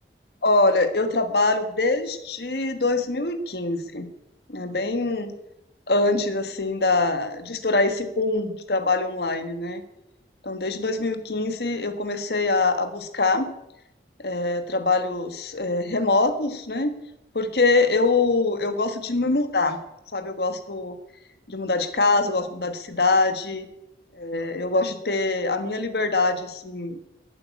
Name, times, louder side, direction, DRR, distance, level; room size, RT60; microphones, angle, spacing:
voice 1, 0.4-4.1 4.5-5.3 5.9-9.8 10.4-13.5 14.2-16.9 17.3-19.8 20.1-21.0 21.5-23.7 24.1-27.0, left 3 dB, 65° left, 10 dB, 1.4 m, -24 dB
11.5 x 8.8 x 9.5 m, 0.88 s
head